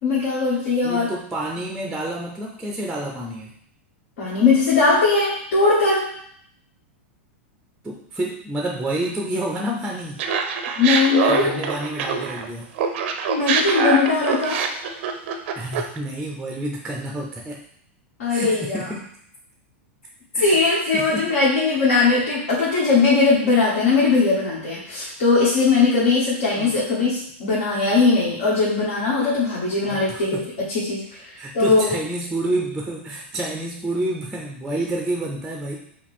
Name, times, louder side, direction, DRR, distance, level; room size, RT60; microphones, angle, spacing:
voice 1, 0.0-1.1 4.2-6.1 10.8-11.5 13.3-14.6 18.2-18.8 20.4-30.3 30.7-31.0 31.5-31.9, left 4 dB, 70° left, -9 dB, 1.7 m, -19 dB
voice 2, 0.8-3.5 7.8-10.2 11.3-12.7 15.6-17.6 18.3-19.1 20.3-21.3 26.6-26.8 29.8-30.5 31.4-35.8, right 1 dB, 5° right, -1 dB, 0.6 m, -29 dB
Laughter, 10.2-12.5 12.8-16.0, right 5 dB, 60° right, 0.5 m, -24 dB
4.8 x 2.4 x 3.5 m, 0.66 s
hypercardioid pair, 125°, 7 cm